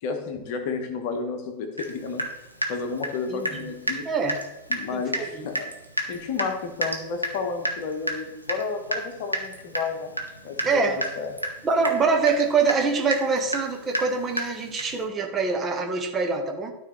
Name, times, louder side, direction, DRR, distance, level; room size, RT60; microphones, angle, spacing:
voice 1, 0.0-2.2 2.7-4.0 4.7-5.7 6.1-10.1 10.4-10.6 11.2-11.3, left 5 dB, 50° left, 5 dB, 1.2 m, -31 dB
Water tap faucet / Drip, 1.8-1.9 2.2-3.6 3.9-4.0 4.3-4.5 4.7-4.8 5.1-5.3 5.5-15.0, right 1 dB, 90° right, 0.9 m, -30 dB
voice 2, 3.3-3.7 4.0-4.4 4.9-5.5 10.6-11.0 11.6-16.7, right 4 dB, 20° right, 3 dB, 1.2 m, -24 dB
12.5 x 4.2 x 3.2 m, 0.98 s
figure-of-eight pair, 90°, 0 cm